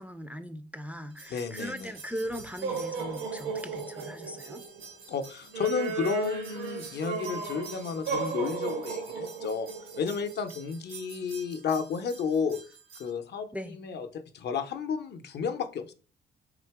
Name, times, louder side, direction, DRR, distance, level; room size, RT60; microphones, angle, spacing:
voice 1, 0.0-4.6 13.5-13.8, equal, 5° right, 0.4 m, -39 dB
sound 1, 1.2-13.1, right 5 dB, 85° right, 1.2 m, -36 dB
voice 2, 1.3-1.9 5.1-9.7 10.0-12.6 13.0-15.9, left 6 dB, 60° left, 0.6 m, -32 dB
3.8 x 2.8 x 4.6 m
cardioid pair, 90°, 20 cm